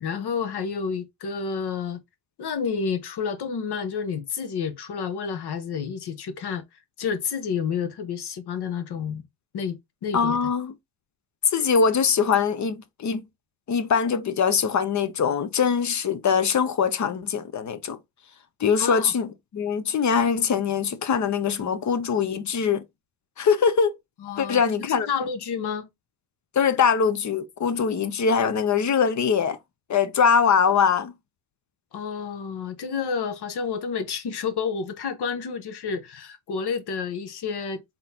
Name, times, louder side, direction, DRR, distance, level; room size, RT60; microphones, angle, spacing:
voice 1, 0.0-2.0 2.4-6.6 7.0-9.2 9.5-10.4 18.8-19.1 24.2-25.9 31.9-37.8, left 6 dB, 55° left, 1.1 m, -30 dB
voice 2, 10.1-10.7 11.5-13.2 13.7-18.0 18.6-22.8 23.4-24.0 24.4-25.1 26.5-29.6 29.9-31.1, left 6 dB, 40° left, 0.7 m, -22 dB
3.9 x 3.8 x 2.7 m
cardioid pair, 120°, 46 cm